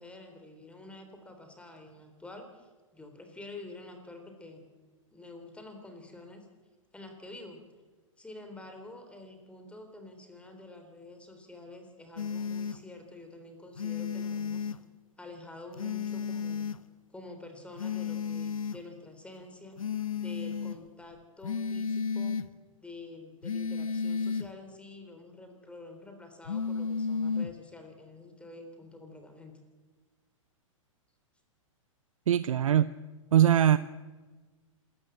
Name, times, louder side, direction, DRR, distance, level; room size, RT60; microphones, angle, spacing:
voice 1, 0.0-4.6 5.1-6.5 6.9-7.6 8.2-14.7 15.2-16.7 17.1-19.8 20.2-22.4 22.8-29.5, left 2 dB, 5° left, 5 dB, 3.5 m, -48 dB
sound 1, 12.2-12.8 13.8-14.8 15.8-16.8 17.8-18.8 19.8-20.8 21.4-22.5 23.4-24.5 26.4-27.5, left 6 dB, 85° left, 1.0 m, -33 dB
voice 2, 32.3-32.9 33.3-33.8, right 10 dB, 75° right, 15 dB, 0.7 m, -21 dB
26.0 x 14.0 x 7.8 m, 1.3 s
hypercardioid pair, 115°, 17 cm